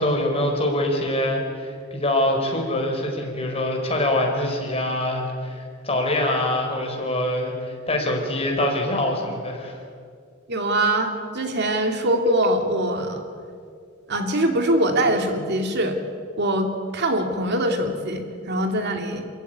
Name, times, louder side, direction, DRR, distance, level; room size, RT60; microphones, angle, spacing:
voice 1, 0.0-9.8, left 1 dB, 30° left, 2 dB, 4.8 m, -24 dB
voice 2, 10.5-13.2 14.1-16.0 16.4-19.3, right 1 dB, 55° right, 5 dB, 2.6 m, -23 dB
28.5 x 15.5 x 9.4 m, 2.2 s
head